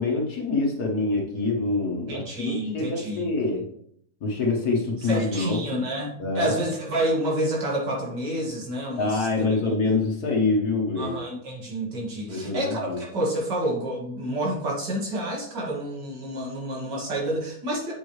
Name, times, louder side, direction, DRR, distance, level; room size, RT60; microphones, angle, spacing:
voice 1, 0.0-3.7 4.2-5.6 6.2-6.5 9.0-11.1 12.3-13.0, left 3 dB, 65° left, -1 dB, 1.7 m, -25 dB
voice 2, 2.1-3.2 5.0-9.3 9.6-9.7 11.0-17.9, right 1 dB, 85° right, -2 dB, 2.7 m, -29 dB
7.5 x 7.2 x 3.2 m, 0.67 s
omnidirectional pair, 1.8 m